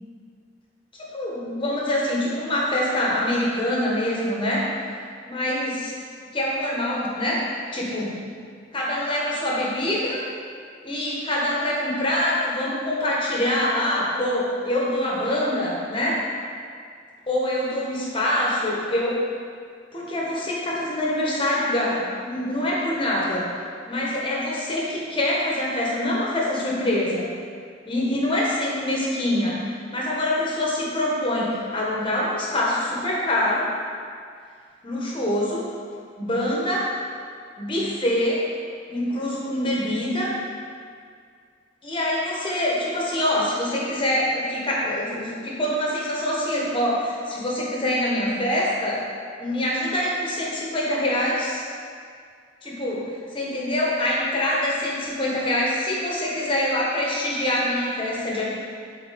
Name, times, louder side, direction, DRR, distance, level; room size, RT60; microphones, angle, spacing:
voice 1, 1.1-4.7 5.3-5.9 6.3-7.5 7.7-8.1 8.7-10.2 10.8-16.3 17.3-19.2 19.9-23.5 23.9-27.3 27.9-29.6 29.9-33.7 34.8-35.7 36.2-36.9 37.6-38.4 38.9-40.4 41.8-49.0 49.4-51.6 52.6-53.0 53.3-58.4, left 1 dB, 25° left, -5 dB, 1.2 m, -25 dB
6.9 x 4.2 x 4.2 m, 2.1 s
head